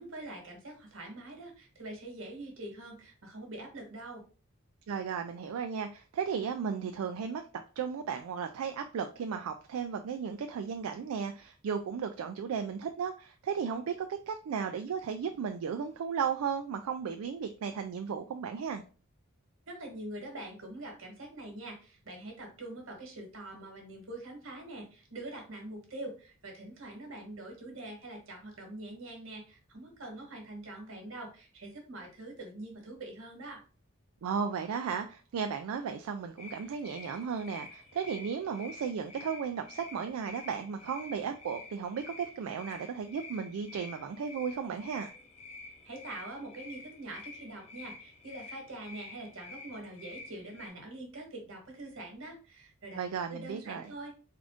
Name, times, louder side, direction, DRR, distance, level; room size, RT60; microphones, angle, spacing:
voice 1, 0.0-4.2 19.7-33.6 45.8-54.1, right 2 dB, 70° right, 2 dB, 1.2 m, -44 dB
voice 2, 4.9-7.4 7.8-18.8 34.2-45.1 52.9-53.9, right 6 dB, 85° right, 6 dB, 0.3 m, -35 dB
sound 1, 36.4-50.7, left 3 dB, 30° left, 0.5 m, -49 dB
3.7 x 2.5 x 3.4 m, 0.37 s
head